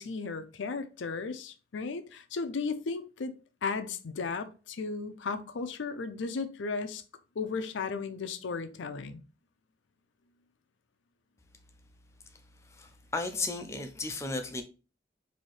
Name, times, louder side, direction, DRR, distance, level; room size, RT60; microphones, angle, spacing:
voice 1, 0.0-3.3 3.6-7.0 7.4-9.2, left 4 dB, 80° left, 0.5 m, -35 dB
voice 2, 12.7-14.6, left 3 dB, 15° left, 0.4 m, -34 dB
4.2 x 2.7 x 3.1 m
head